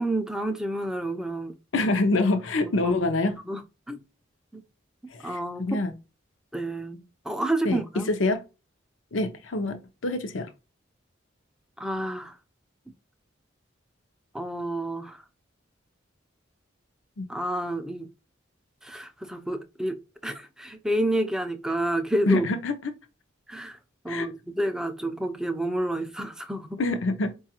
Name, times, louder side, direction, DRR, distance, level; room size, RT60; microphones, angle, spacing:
voice 1, 0.0-1.6 2.8-3.0 3.5-3.6 3.9-4.0 4.5-4.6 5.2-5.8 6.5-8.1 11.8-12.3 14.3-15.2 17.3-18.1 18.8-22.5 23.5-23.8 24.0-26.8, right 1 dB, 5° right, 0.3 m, -29 dB
voice 2, 1.7-3.3 5.1-5.9 7.6-7.8 8.1-8.4 9.1-9.8 10.0-10.5 17.2-17.3 22.2-22.9 24.1-24.3 26.8-27.3, left 2 dB, 80° left, 0.6 m, -25 dB
4.7 x 2.3 x 2.8 m
head